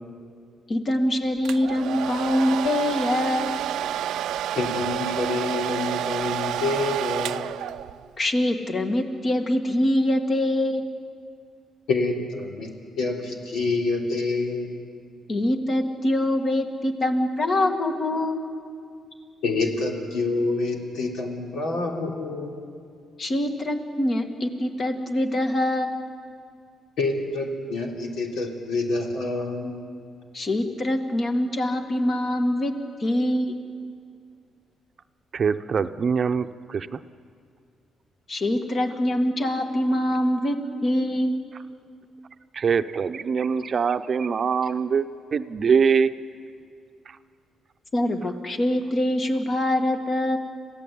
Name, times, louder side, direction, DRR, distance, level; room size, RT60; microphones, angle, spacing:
voice 1, 0.7-3.6 8.2-10.9 15.3-18.5 23.2-26.0 30.3-32.7 33.0-33.6 38.3-40.6 40.8-41.3 47.9-50.4, left 1 dB, 40° left, 5 dB, 2.2 m, -24 dB
Domestic sounds home sounds, 1.4-8.1, right 11 dB, 80° right, 0.5 m, -29 dB
voice 2, 4.6-7.4 11.9-14.7 19.4-22.6 27.0-29.8, left 3 dB, 80° left, 0 dB, 3.4 m, -27 dB
voice 3, 35.3-37.0 42.5-45.1 45.3-46.1, right 6 dB, 45° right, 10 dB, 0.7 m, -23 dB
27.0 x 16.5 x 8.6 m, 2.3 s
cardioid pair, 90°, 0 cm